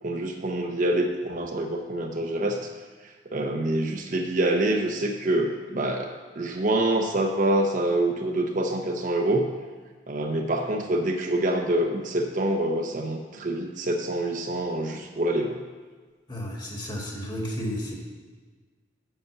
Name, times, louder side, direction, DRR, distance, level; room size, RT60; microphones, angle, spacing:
voice 1, 0.0-2.6 3.3-9.5 10.1-15.6, right 1 dB, 45° right, 3 dB, 0.7 m, -26 dB
voice 2, 16.3-18.0, equal, 25° left, -1 dB, 1.7 m, -32 dB
7.9 x 5.9 x 6.8 m, 1.4 s
head